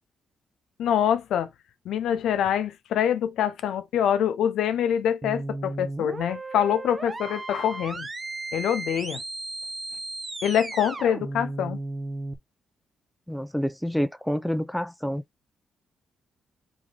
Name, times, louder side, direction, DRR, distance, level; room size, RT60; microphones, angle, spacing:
voice 1, 0.8-1.5 1.9-8.1 8.5-9.2 10.4-11.8, left 9 dB, 75° left, 0.5 m, -25 dB
sound 1, 5.2-12.4, right 2 dB, 30° right, 0.8 m, -35 dB
voice 2, 13.3-15.2, equal, 5° left, 0.5 m, -28 dB
3.5 x 3.2 x 3.6 m
supercardioid pair, 50°, 0 cm